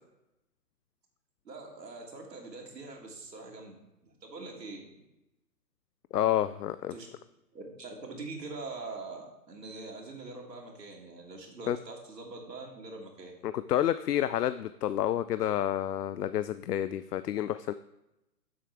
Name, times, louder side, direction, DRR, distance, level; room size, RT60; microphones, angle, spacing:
voice 1, 1.4-4.8 6.9-7.1 7.5-13.3, right 3 dB, 85° right, 0 dB, 2.7 m, -43 dB
voice 2, 6.1-6.9 11.7-11.8 13.4-17.7, left 11 dB, 75° left, 13 dB, 0.5 m, -29 dB
10.5 x 7.6 x 3.4 m, 0.92 s
hypercardioid pair, 165°, 48 cm